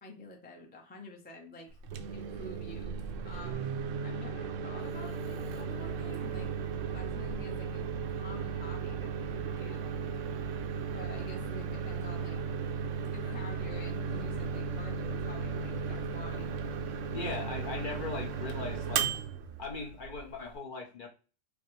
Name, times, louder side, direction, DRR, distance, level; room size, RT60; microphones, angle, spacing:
voice 1, 0.0-1.7 2.1-2.9 3.2-3.7 4.0-6.5 6.9-9.9 10.9-12.4 13.1-16.5, left 1 dB, 10° left, 1 dB, 0.4 m, -48 dB
Microwave oven, 1.7-20.5, right 6 dB, 70° right, 0.9 m, -36 dB
voice 2, 17.1-19.1 19.6-21.1, left 4 dB, 50° left, 1 dB, 0.7 m, -39 dB
5.1 x 2.0 x 3.1 m, 0.36 s
omnidirectional pair, 1.4 m